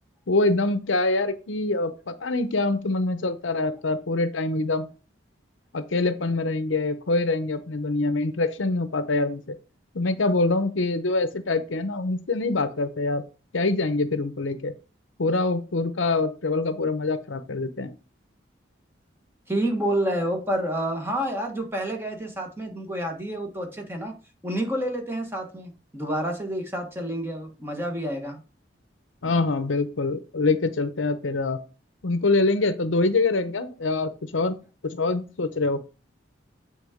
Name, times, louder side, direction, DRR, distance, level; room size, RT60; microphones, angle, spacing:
voice 1, 0.3-4.9 5.7-9.6 9.9-13.2 13.5-14.7 15.2-17.9 29.2-31.6 32.0-34.5 34.8-35.8, left 3 dB, 85° left, 11 dB, 0.8 m, -25 dB
voice 2, 19.5-24.1 24.4-28.4, right 1 dB, 10° right, 2 dB, 1.5 m, -29 dB
8.5 x 3.7 x 5.0 m, 0.33 s
head